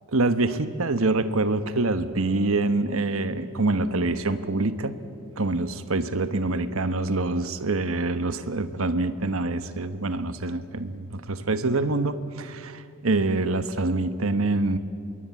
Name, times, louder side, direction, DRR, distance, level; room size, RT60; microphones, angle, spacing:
voice 1, 0.1-4.9 5.4-14.8, right 2 dB, 70° right, 11 dB, 1.2 m, -25 dB
26.5 x 22.5 x 8.4 m, 2.5 s
head